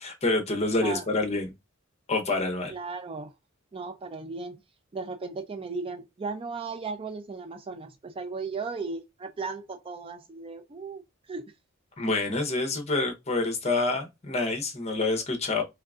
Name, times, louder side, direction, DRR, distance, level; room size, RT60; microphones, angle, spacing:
voice 1, 0.0-1.5 2.1-2.7 12.0-15.6, left 2 dB, 30° left, 0.9 m, -27 dB
voice 2, 2.7-3.3 3.7-4.6 4.9-11.0 11.3-11.4, right 4 dB, 25° right, 0.4 m, -36 dB
3.7 x 3.4 x 2.4 m
head